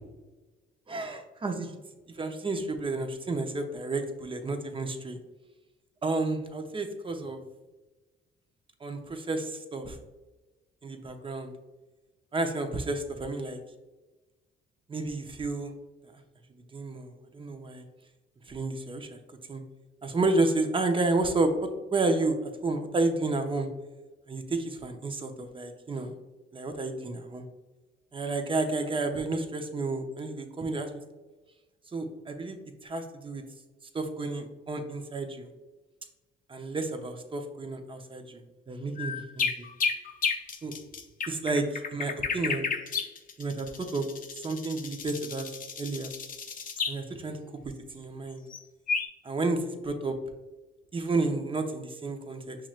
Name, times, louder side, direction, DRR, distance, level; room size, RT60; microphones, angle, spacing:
voice 1, 0.9-1.7 2.2-5.2 6.0-7.4 8.8-10.0 10.8-11.5 12.3-13.6 14.9-15.7 16.7-17.9 18.5-19.2 19.5-19.6 20.0-21.5 21.9-23.7 24.3-26.1 26.5-27.4 28.1-30.9 31.9-32.6 32.8-33.4 33.9-35.5 36.5-38.4 38.7-39.7 40.6-40.7 41.3-41.6 41.9-42.7 43.4-44.1 44.4-45.5 45.8-46.1 46.9-48.4 49.2-50.2 50.9-52.6, right 2 dB, 25° right, 6 dB, 0.7 m, -31 dB
sound 1, 39.0-47.0 48.5-48.6 48.9-49.1, left 5 dB, 45° left, 0.6 m, -32 dB
5.9 x 3.1 x 2.4 m, 1.2 s
cardioid pair, 90°, 20 cm